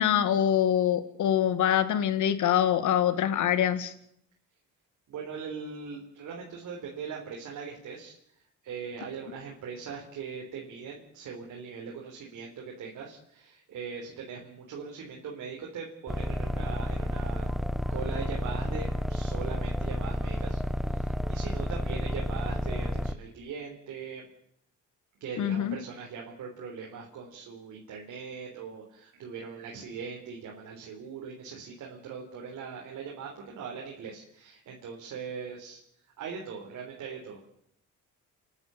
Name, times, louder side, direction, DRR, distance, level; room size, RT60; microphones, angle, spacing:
voice 1, 0.0-3.9 25.4-25.8, left 10 dB, 75° left, 12 dB, 2.0 m, -24 dB
voice 2, 5.1-8.1 8.6-17.5 17.9-20.6 20.9-24.3 25.2-35.8 36.2-37.4, right 6 dB, 75° right, -1 dB, 4.1 m, -40 dB
sound 1, 16.1-23.1, left 1 dB, ahead, 1.1 m, -31 dB
29.0 x 11.5 x 8.5 m, 0.71 s
cardioid pair, 90°, 30 cm